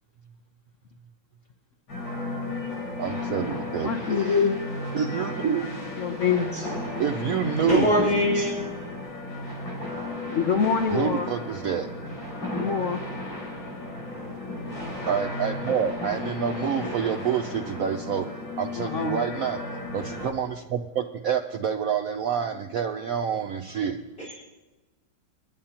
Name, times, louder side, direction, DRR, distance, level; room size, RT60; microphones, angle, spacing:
sound 1, 1.9-20.3, left 2 dB, 75° left, 5.6 m, -34 dB
voice 1, 3.0-4.5 4.9-5.7 7.0-8.1 10.9-11.9 15.1-18.3 18.6-19.6 19.9-24.0, right 8 dB, 85° right, 6 dB, 0.7 m, -28 dB
voice 2, 3.8-4.6 6.0-6.6 10.3-11.3 12.5-13.0 18.8-19.2, left 6 dB, 60° left, 5 dB, 0.8 m, -25 dB
voice 3, 7.6-8.6 24.3-24.4, equal, 30° left, -6 dB, 4.1 m, -23 dB
26.0 x 10.0 x 2.9 m, 1.1 s
omnidirectional pair, 2.1 m